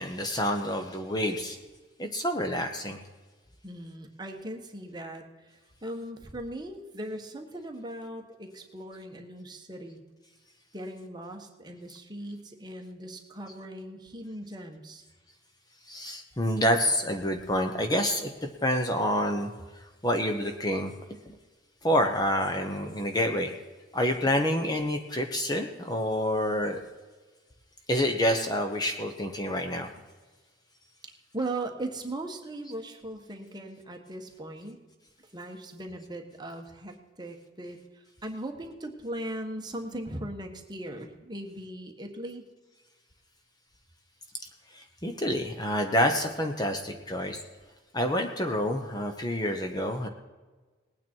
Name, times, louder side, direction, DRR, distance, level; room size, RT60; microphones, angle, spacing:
voice 1, 0.0-1.6 2.0-3.0 15.9-19.5 20.0-20.9 21.3-21.4 21.8-23.5 23.9-26.8 27.9-29.9 44.7-47.4 47.9-50.1, equal, 20° left, 5 dB, 0.9 m, -28 dB
voice 2, 3.6-10.0 10.7-15.0 31.0-34.8 35.3-42.4, right 1 dB, 20° right, 3 dB, 1.4 m, -39 dB
19.0 x 9.2 x 4.5 m, 1.3 s
head